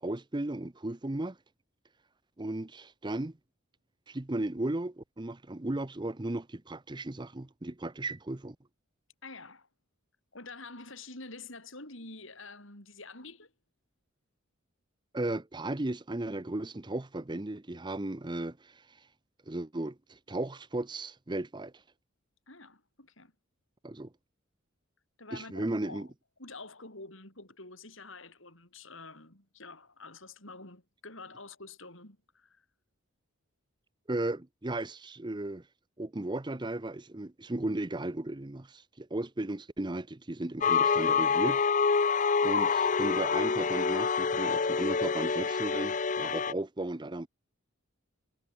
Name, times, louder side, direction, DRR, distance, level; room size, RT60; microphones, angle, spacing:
voice 1, 0.0-1.4 2.4-3.4 4.1-8.6 15.1-18.7 19.5-21.7 23.8-24.1 25.3-26.1 34.1-35.6 36.0-41.6 42.4-47.3, right 2 dB, 20° right, 0.7 m, -35 dB
voice 2, 9.2-9.7 10.3-13.5 22.5-23.3 25.2-26.1 26.4-32.7, left 3 dB, 60° left, 7.2 m, -47 dB
sound 1, 40.6-46.5, left 5 dB, 35° left, 0.6 m, -27 dB
head